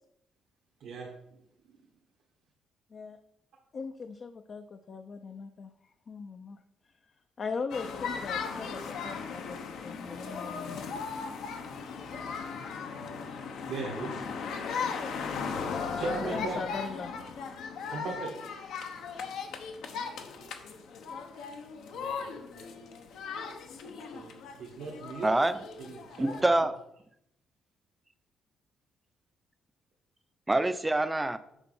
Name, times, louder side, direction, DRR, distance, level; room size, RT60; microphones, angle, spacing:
voice 1, 0.8-1.1 13.0-13.2 13.7-14.2 16.0-16.6 17.9-18.3 21.9-22.7 24.1-25.3 25.8-26.5, right 3 dB, 75° right, 1.4 m, -38 dB
voice 2, 3.7-5.7 6.1-6.6 7.4-10.8 16.1-17.1, left 5 dB, 45° left, 0.5 m, -39 dB
sound 1, 7.7-26.4, left 5 dB, 80° left, 0.9 m, -37 dB
voice 3, 25.2-25.6 26.2-26.8 30.5-31.4, right 2 dB, 15° right, 0.5 m, -26 dB
7.1 x 4.2 x 5.4 m
cardioid pair, 90°, 0 cm